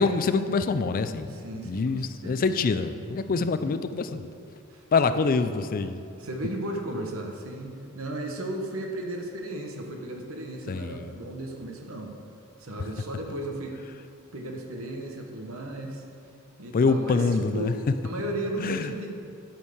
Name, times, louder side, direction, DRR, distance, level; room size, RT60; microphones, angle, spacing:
voice 1, 0.0-4.3 4.9-6.0 10.7-11.1 16.7-17.7 18.6-18.9, left 4 dB, 40° left, 11 dB, 0.4 m, -25 dB
voice 2, 1.2-2.5 3.3-3.7 4.7-5.3 6.2-12.1 12.6-13.8 14.3-16.0 16.6-17.8 18.0-19.3, right 1 dB, 70° right, 2 dB, 1.1 m, -35 dB
10.5 x 4.5 x 6.5 m, 2.5 s
head